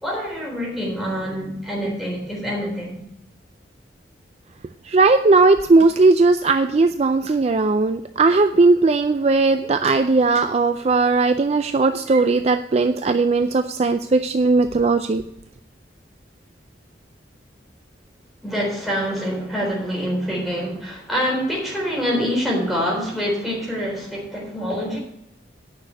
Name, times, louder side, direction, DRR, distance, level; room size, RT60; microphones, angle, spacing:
voice 1, 0.0-3.0 18.4-25.0, equal, ahead, -4 dB, 3.8 m, -25 dB
voice 2, 4.9-15.2, right 3 dB, 35° right, 8 dB, 0.4 m, -17 dB
9.6 x 6.1 x 8.1 m, 0.77 s
head